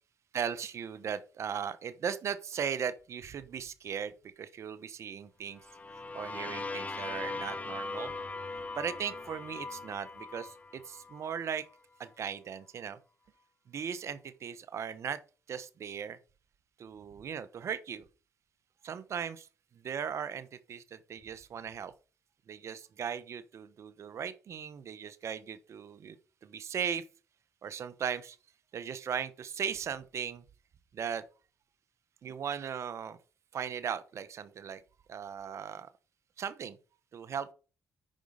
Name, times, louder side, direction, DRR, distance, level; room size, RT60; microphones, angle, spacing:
voice 1, 0.3-5.6 6.1-8.1 8.8-11.6 12.0-13.0 13.7-15.2 15.5-16.2 16.8-18.0 18.8-19.5 19.8-21.9 22.5-26.2 26.4-27.0 27.6-28.4 28.7-30.4 30.9-31.2 32.2-33.2 33.5-34.8 35.1-35.9 36.4-36.8 37.1-37.5, right 7 dB, 60° right, 1.0 m, -37 dB
sound 1, 5.6-11.4, left 3 dB, 25° left, 0.7 m, -40 dB
9.2 x 5.3 x 5.0 m
cardioid pair, 70°, 5 cm